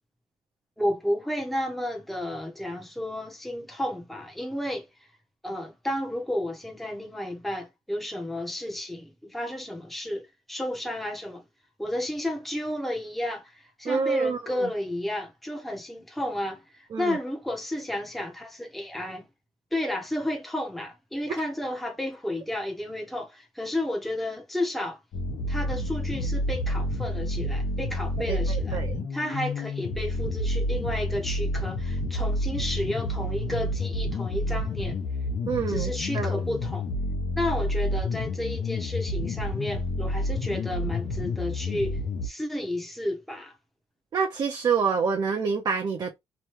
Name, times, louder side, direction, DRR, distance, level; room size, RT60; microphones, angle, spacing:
voice 1, 0.8-4.9 5.4-11.4 11.8-19.3 19.7-25.0 25.5-28.8 29.1-35.0 35.7-36.9 37.3-43.5, left 1 dB, ahead, 0.7 m, -32 dB
voice 2, 13.8-14.7 16.9-17.2 28.3-29.1 35.5-36.4 44.1-46.2, right 5 dB, 40° right, 0.5 m, -27 dB
sound 1, 25.1-42.3, left 1 dB, 70° left, 0.8 m, -29 dB
2.9 x 2.2 x 3.1 m
cardioid pair, 150°, 10 cm